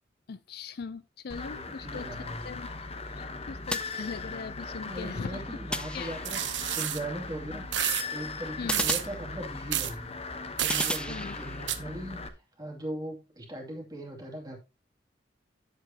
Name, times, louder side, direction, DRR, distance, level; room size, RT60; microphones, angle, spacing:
voice 1, 0.3-2.7 3.0-5.4 5.9-6.2 8.6-8.9 11.1-11.4, left 5 dB, 60° left, 0.4 m, -40 dB
sound 1, 1.3-12.3, left 3 dB, 35° left, 1.0 m, -39 dB
voice 2, 1.5-2.6 4.9-6.4 6.7-10.1 10.6-12.2 12.6-14.6, right 1 dB, 20° right, 2.6 m, -39 dB
sound 2, 3.7-4.6 5.7-6.6 8.7-9.8 10.7-11.8, left 1 dB, 5° left, 0.5 m, -36 dB
sound 3, 6.2-7.0 7.7-8.0 8.7-9.1 9.7-9.9 10.6-11.0 11.7-11.8, right 12 dB, 75° right, 0.8 m, -29 dB
9.8 x 7.5 x 2.8 m
head